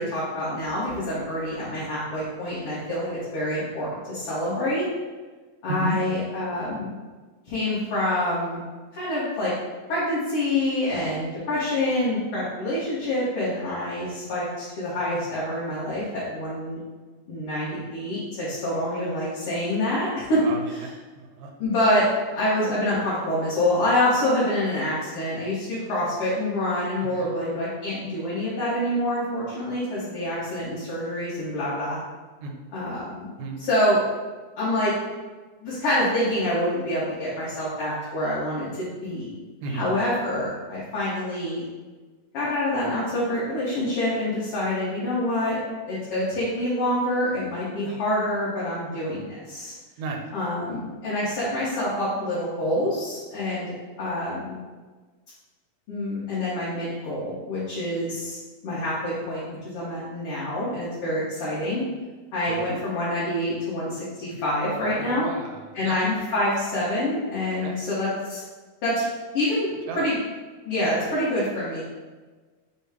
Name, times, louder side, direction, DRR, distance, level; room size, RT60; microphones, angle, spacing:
voice 1, 0.0-4.9 5.6-6.9 7.4-8.6 8.9-9.5 9.9-16.8 17.3-20.4 21.6-22.0 22.3-32.0 32.7-33.3 33.6-34.0 34.6-34.9 35.6-39.3 39.7-41.6 42.3-45.6 45.9-49.7 50.3-53.7 54.0-54.6 55.9-58.4 58.6-61.8 62.3-65.3 65.7-68.4 68.8-69.1 69.3-70.1 70.6-71.8, left 1 dB, 55° left, -10 dB, 1.6 m, -26 dB
voice 2, 5.7-6.0 20.2-21.5 27.0-27.4 32.4-32.6 33.4-33.6 39.6-40.0 50.0-50.2 62.5-62.7 65.0-66.0 67.6-67.8 69.9-70.0, right 3 dB, 80° right, 2 dB, 1.7 m, -34 dB
6.5 x 2.3 x 3.5 m, 1.3 s
omnidirectional pair, 3.6 m